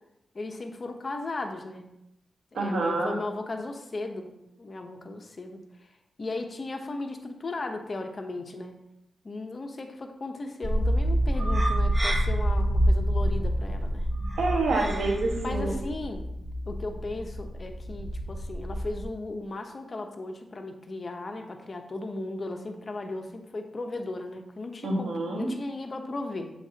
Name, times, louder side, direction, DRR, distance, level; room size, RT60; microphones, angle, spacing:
voice 1, 0.3-1.9 2.5-5.6 6.2-8.8 9.2-14.1 15.4-16.3 16.6-26.5, left 2 dB, 40° left, 5 dB, 0.9 m, -36 dB
voice 2, 2.5-3.1 14.4-15.7 24.8-25.5, right 2 dB, 85° right, 0 dB, 1.6 m, -27 dB
sound 1, 10.6-19.0, equal, 20° right, 1.1 m, -27 dB
8.5 x 6.2 x 2.9 m, 0.85 s
cardioid pair, 90°, 0 cm